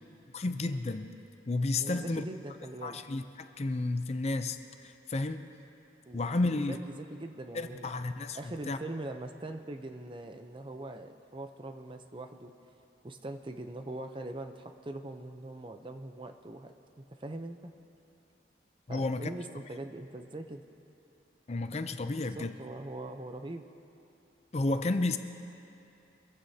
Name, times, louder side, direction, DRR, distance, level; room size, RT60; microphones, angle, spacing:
voice 1, 0.3-1.1 1.5-2.2 2.8-5.5 6.1-6.8 7.5-8.8 18.9-19.3 21.5-22.6 24.5-25.2, left 2 dB, 35° left, 9 dB, 0.5 m, -32 dB
voice 2, 1.8-3.0 6.1-7.9 8.3-12.5 13.0-17.7 18.9-20.7 22.1-23.7, right 2 dB, 30° right, 7 dB, 0.6 m, -42 dB
25.0 x 15.5 x 2.8 m, 2.7 s
head